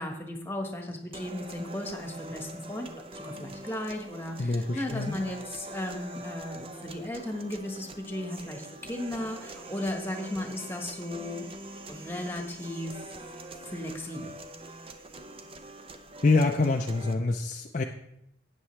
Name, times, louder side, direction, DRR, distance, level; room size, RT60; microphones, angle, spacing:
voice 1, 0.0-11.5 11.9-13.0 13.6-14.3, left 1 dB, 10° left, 3 dB, 1.3 m, -35 dB
sound 1, 1.1-17.1, right 1 dB, 30° right, 0.6 m, -44 dB
voice 2, 4.4-5.1 16.2-17.8, left 3 dB, 40° left, 3 dB, 0.5 m, -25 dB
13.0 x 9.1 x 3.2 m, 0.77 s
head